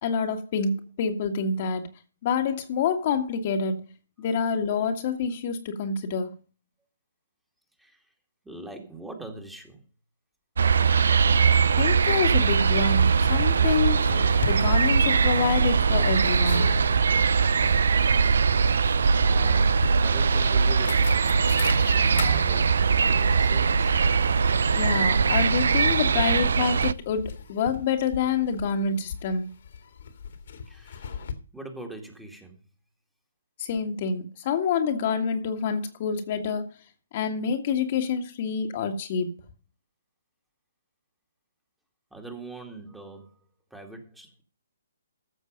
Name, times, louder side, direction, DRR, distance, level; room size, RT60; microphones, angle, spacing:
voice 1, 0.0-1.9 2.2-3.8 4.2-6.3 11.8-14.1 14.4-16.7 24.7-29.5 33.6-36.7 37.1-39.3, left 5 dB, 40° left, 1.8 m, -27 dB
voice 2, 8.4-9.8 19.2-21.1 21.8-23.9 30.7-31.2 31.5-32.6 42.1-43.4 43.7-44.4, right 1 dB, 5° right, 2.2 m, -42 dB
sound 1, 10.6-26.9, right 5 dB, 70° right, 0.6 m, -21 dB
sound 2, 13.0-31.3, left 6 dB, 60° left, 2.2 m, -38 dB
14.5 x 6.6 x 5.2 m
figure-of-eight pair, 135°, 0 cm